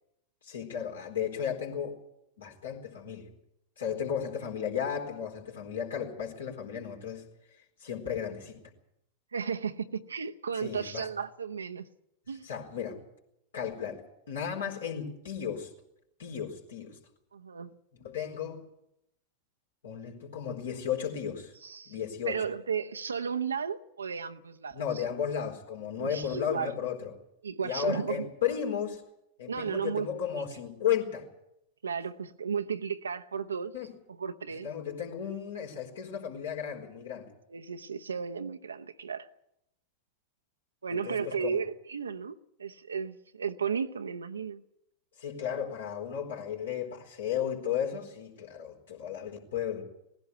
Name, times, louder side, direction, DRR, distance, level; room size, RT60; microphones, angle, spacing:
voice 1, 0.4-2.0 2.4-3.3 3.8-7.2 7.8-8.6 10.5-11.1 12.4-13.0 13.5-15.7 16.2-17.0 18.0-18.6 19.8-21.5 21.9-22.4 24.7-27.1 27.6-29.0 29.4-31.3 33.7-34.0 34.5-37.3 40.9-41.6 45.2-49.8, left 8 dB, 65° left, 4.1 m, -34 dB
voice 2, 9.3-11.9 12.3-12.5 17.3-17.7 21.6-21.9 22.3-24.8 26.0-26.8 27.4-28.3 29.5-30.1 31.8-33.7 34.2-34.7 37.5-39.3 40.8-44.6, right 6 dB, 75° right, 0.8 m, -34 dB
19.5 x 16.0 x 9.3 m
figure-of-eight pair, 90°, 0 cm